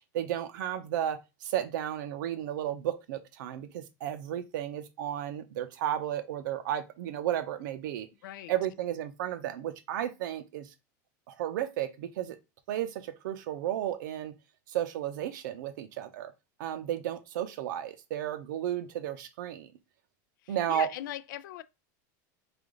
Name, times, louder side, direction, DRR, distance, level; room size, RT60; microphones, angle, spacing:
voice 1, 0.1-8.1 8.5-10.7 11.3-12.4 12.7-14.3 14.7-16.3 16.6-19.7 20.5-20.9, right 11 dB, 80° right, 0.6 m, -33 dB
voice 2, 8.2-8.5 20.4-21.6, left 13 dB, 85° left, 0.4 m, -40 dB
3.4 x 2.5 x 3.7 m
supercardioid pair, 145°, 10 cm